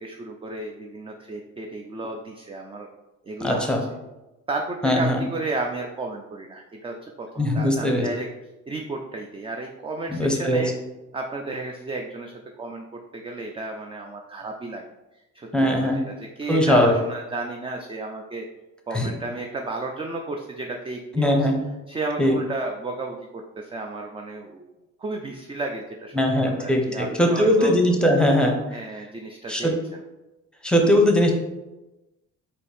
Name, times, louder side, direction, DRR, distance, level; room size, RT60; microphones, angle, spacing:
voice 1, 0.0-2.9 3.2-3.7 4.5-8.3 8.7-10.7 11.1-14.8 15.3-18.5 18.9-21.5 21.9-24.6 25.0-26.1 26.4-27.7 28.7-30.0, right 3 dB, 20° right, 2 dB, 0.3 m, -33 dB
voice 2, 3.4-3.8 4.8-5.2 7.4-8.1 10.1-10.7 15.5-16.0 16.5-16.9 18.9-19.1 21.2-21.6 22.2-22.4 26.1-28.8 29.5-29.7 30.6-31.3, left 1 dB, 5° left, 2 dB, 0.7 m, -20 dB
4.1 x 2.7 x 3.3 m, 1.0 s
cardioid pair, 90°, 30 cm